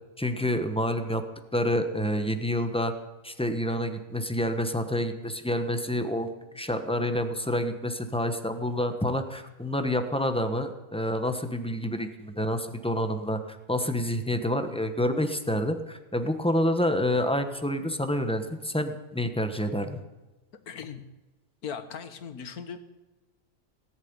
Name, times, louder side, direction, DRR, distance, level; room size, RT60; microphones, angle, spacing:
voice 1, 0.2-1.2 1.5-2.9 3.2-13.4 13.7-20.0, left 1 dB, 5° left, 7 dB, 0.9 m, -28 dB
voice 2, 20.7-21.1 21.6-22.8, left 7 dB, 80° left, 10 dB, 1.7 m, -38 dB
18.0 x 7.4 x 9.7 m, 1.1 s
omnidirectional pair, 1.6 m